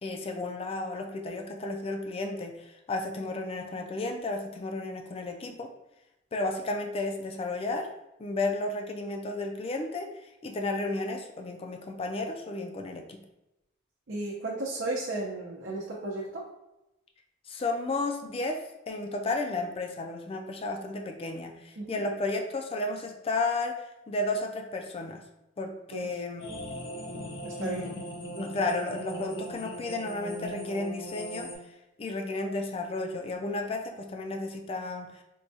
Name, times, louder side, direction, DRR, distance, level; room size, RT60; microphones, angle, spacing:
voice 1, 0.0-5.7 6.3-7.9 8.2-10.1 10.4-13.2 17.5-25.2 25.6-26.4 27.6-28.0 28.4-31.5 32.0-35.1, left 2 dB, 30° left, 3 dB, 0.3 m, -33 dB
voice 2, 14.1-16.4 21.8-22.0 25.9-26.1 27.4-27.8, right 2 dB, 70° right, -5 dB, 0.6 m, -34 dB
sound 1, 26.4-31.6, equal, 70° left, 0.8 m, -39 dB
4.5 x 2.3 x 2.6 m, 0.92 s
head